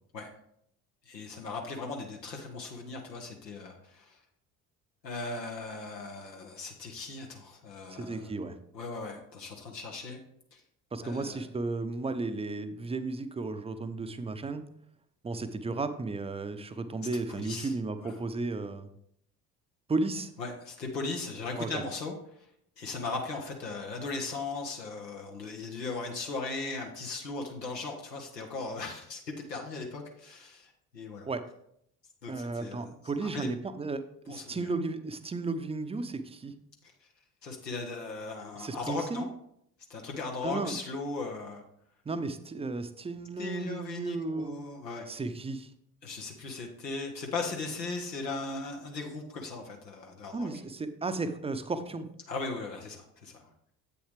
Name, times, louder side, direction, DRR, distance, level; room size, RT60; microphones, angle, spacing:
voice 1, 1.1-4.2 5.0-8.3 8.7-10.2 10.5-10.6 11.0-11.4 17.3-17.7 18.0-18.1 20.4-22.5 22.8-29.2 29.5-31.3 32.2-32.9 33.2-33.5 34.3-34.7 37.0-37.1 37.4-39.3 39.9-41.6 43.4-45.1 46.0-50.5 52.3-53.5, left 3 dB, 90° left, 1 dB, 0.8 m, -38 dB
voice 2, 7.9-8.6 10.9-14.6 15.2-18.9 19.9-20.3 21.6-21.8 31.3-31.4 32.3-36.5 38.6-39.2 40.4-40.8 42.1-44.5 45.1-45.7 50.3-52.1, right 3 dB, 15° right, 10 dB, 0.5 m, -34 dB
7.8 x 6.7 x 3.4 m, 0.72 s
figure-of-eight pair, 55°, 48 cm